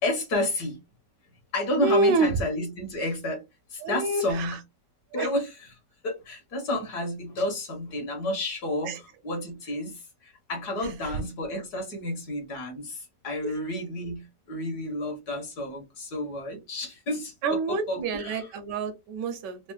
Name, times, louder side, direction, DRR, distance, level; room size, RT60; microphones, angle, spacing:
voice 1, 0.0-0.8 1.5-3.4 3.7-4.6 5.1-5.8 6.0-18.5, left 1 dB, 65° left, 1.7 m, -31 dB
voice 2, 1.8-2.3 3.8-4.6 5.1-5.3 8.9-9.0 11.0-11.2 13.4-13.5 17.4-19.7, right 3 dB, 75° right, 1.2 m, -27 dB
4.1 x 2.0 x 2.3 m
omnidirectional pair, 1.9 m